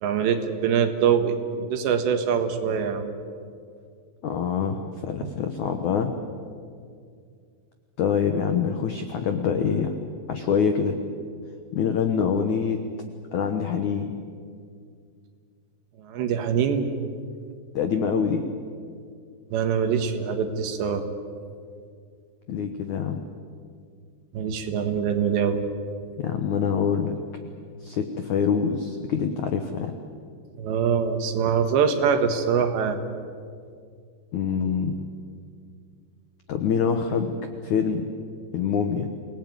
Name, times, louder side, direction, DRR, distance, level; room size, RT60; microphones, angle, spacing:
voice 1, 0.0-3.1 16.0-16.9 19.5-21.1 24.3-25.6 30.6-33.0, right 7 dB, 75° right, 7 dB, 3.6 m, -24 dB
voice 2, 4.2-6.1 8.0-9.9 10.3-11.0 11.7-12.8 13.3-14.1 17.7-18.4 22.5-23.2 26.2-27.2 27.8-29.9 34.3-35.0 36.5-37.3 37.6-38.1 38.5-39.1, left 7 dB, 90° left, 6 dB, 1.6 m, -25 dB
27.5 x 19.0 x 9.4 m, 2.2 s
omnidirectional pair, 5.4 m